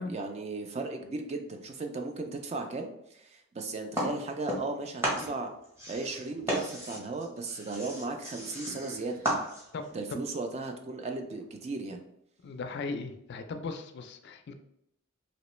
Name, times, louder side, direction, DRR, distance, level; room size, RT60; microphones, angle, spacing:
voice 1, 0.0-5.5 5.9-9.2 9.9-12.0, right 3 dB, 30° right, 5 dB, 0.3 m, -36 dB
sound 1, 3.9-4.8 5.0-9.9, equal, 15° right, 0.9 m, -34 dB
sound 2, 8.3-8.5 8.7-9.5 9.8-9.9 10.6-10.7 11.4-11.8, left 1 dB, 75° right, 1.0 m, -52 dB
voice 2, 9.7-10.2 12.4-14.5, left 3 dB, 50° left, 8 dB, 0.3 m, -38 dB
3.0 x 2.9 x 3.1 m, 0.77 s
head